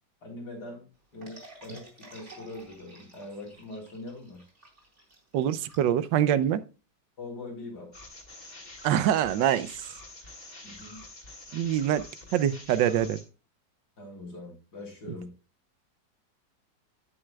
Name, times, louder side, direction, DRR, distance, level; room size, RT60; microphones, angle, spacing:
voice 1, 0.2-0.9 1.1-4.4 7.2-7.9 10.6-11.1 14.0-15.3, left 2 dB, 60° left, 4.0 m, -42 dB
sound 1, 1.2-6.5, right 1 dB, 40° right, 4.0 m, -51 dB
voice 2, 5.3-6.6 8.8-9.9 11.5-12.0 12.3-13.2, right 10 dB, 85° right, 1.3 m, -24 dB
sound 2, 7.9-13.2, left 2 dB, 30° left, 2.4 m, -47 dB
15.0 x 6.4 x 2.3 m
omnidirectional pair, 1.9 m